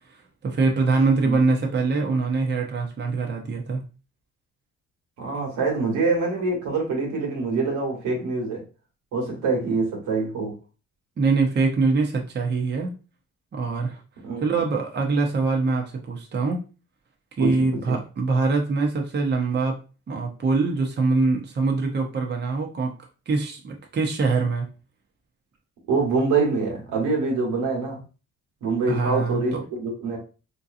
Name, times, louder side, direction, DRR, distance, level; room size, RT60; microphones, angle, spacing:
voice 1, 0.4-3.8 11.2-12.9 13.5-14.0 14.4-16.6 17.4-19.8 20.1-23.0 23.3-24.7 28.9-29.6, right 3 dB, 35° right, 1 dB, 0.8 m, -23 dB
voice 2, 5.2-8.6 9.1-10.5 14.2-14.4 17.4-18.0 25.9-28.0 28.6-30.2, right 3 dB, 90° right, 0 dB, 1.3 m, -25 dB
3.7 x 2.7 x 2.5 m, 0.34 s
cardioid pair, 90°, 30 cm